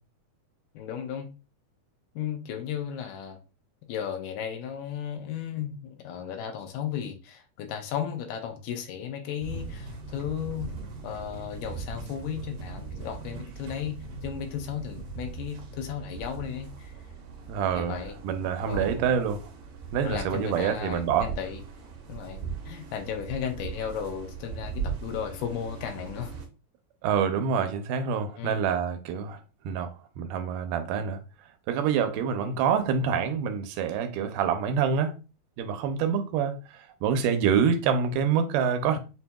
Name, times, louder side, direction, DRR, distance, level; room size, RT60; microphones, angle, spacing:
voice 1, 0.7-1.3 2.2-3.4 3.9-10.7 11.0-16.9 17.7-18.1 18.6-19.2 20.0-21.6 22.1-26.3 28.4-28.6 32.4-32.6 37.1-37.2, left 8 dB, 85° left, 2.3 m, -35 dB
sound 1, 9.4-26.5, right 5 dB, 70° right, 1.4 m, -39 dB
voice 2, 17.5-18.0 18.2-19.4 19.9-21.3 27.0-29.4 29.7-31.2 31.7-35.1 35.6-36.6 37.0-39.0, right 7 dB, 85° right, 2.2 m, -26 dB
5.7 x 2.7 x 2.2 m
omnidirectional pair, 3.7 m